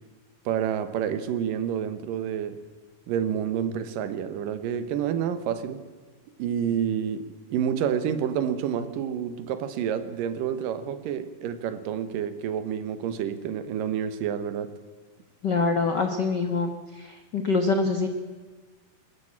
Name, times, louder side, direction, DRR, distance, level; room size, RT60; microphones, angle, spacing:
voice 1, 0.5-2.6 3.1-5.8 6.4-14.7, right 8 dB, 75° right, 11 dB, 2.7 m, -29 dB
voice 2, 15.4-16.7 17.0-18.1, left 4 dB, 80° left, 6 dB, 0.9 m, -25 dB
21.5 x 13.5 x 8.7 m, 1.4 s
omnidirectional pair, 4.0 m